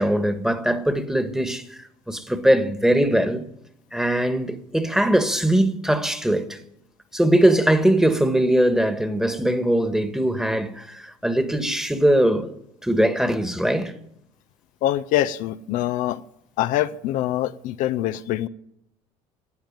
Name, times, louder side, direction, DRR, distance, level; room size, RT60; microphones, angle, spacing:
voice 1, 0.0-3.4 3.9-6.6 7.1-12.5 12.8-13.9, right 1 dB, 5° right, 1.6 m, -21 dB
voice 2, 14.8-16.2 16.6-18.5, left 13 dB, 70° left, 0.6 m, -24 dB
13.0 x 9.0 x 9.0 m
supercardioid pair, 90°, 14 cm